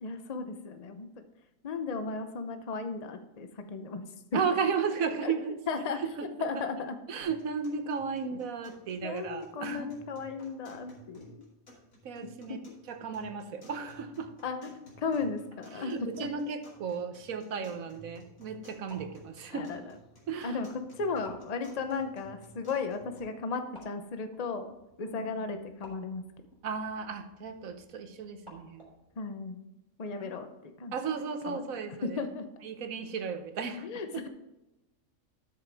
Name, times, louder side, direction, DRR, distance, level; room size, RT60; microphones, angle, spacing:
voice 1, 0.0-1.1 1.6-4.0 4.3-4.4 5.2-5.3 5.7-6.0 6.4-7.0 9.0-11.5 14.4-16.3 19.5-19.8 20.4-20.7 20.9-24.7 25.0-26.2 29.2-29.6 30.0-30.9 31.5-31.6 32.0-32.4 33.8-34.3, left 4 dB, 35° left, 8 dB, 0.7 m, -35 dB
voice 2, 4.3-5.6 6.2-6.5 7.1-9.9 12.0-12.6 12.9-14.3 15.7-19.7 20.3-20.6 25.1-25.3 26.6-28.9 30.2-30.4 30.9-32.2 32.6-34.2, right 5 dB, 80° right, 8 dB, 1.4 m, -34 dB
sound 1, 7.2-23.2, right 1 dB, 70° left, 3.1 m, -55 dB
sound 2, 18.6-29.2, left 1 dB, 20° right, 3.5 m, -58 dB
12.5 x 6.5 x 3.5 m, 0.95 s
omnidirectional pair, 1.4 m